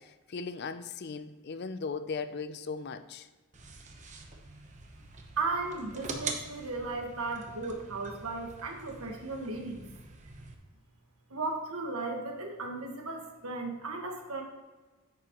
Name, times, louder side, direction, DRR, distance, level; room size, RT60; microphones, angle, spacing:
voice 1, 0.0-3.3, left 4 dB, 45° left, 0.4 m, -38 dB
sound 1, 3.5-10.5, right 4 dB, 35° right, 0.9 m, -44 dB
voice 2, 5.4-9.9 11.3-14.4, right 3 dB, 75° right, 1.5 m, -35 dB
9.4 x 7.3 x 3.0 m
head